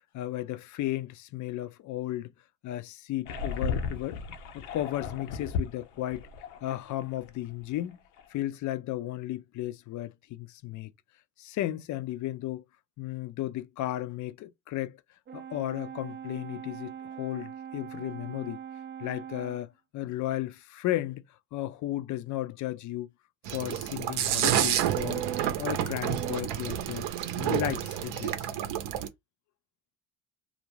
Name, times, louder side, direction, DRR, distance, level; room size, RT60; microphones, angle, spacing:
voice 1, 0.1-2.3 2.6-4.2 4.5-6.3 6.6-8.0 8.3-10.9 11.4-12.6 13.0-15.0 15.3-18.6 19.0-21.2 21.5-23.1 23.5-25.2 25.6-27.1 27.4-28.5, left 14 dB, 45° left, 0.4 m, -34 dB
sound 1, 3.3-7.3 7.6-7.8 8.2-8.3, left 5 dB, 75° left, 0.7 m, -35 dB
Brass instrument, 15.3-19.7, right 8 dB, 30° right, 0.4 m, -42 dB
sound 2, 23.5-29.1, right 11 dB, 65° right, 0.7 m, -29 dB
2.4 x 2.0 x 3.0 m
hypercardioid pair, 70°, 45 cm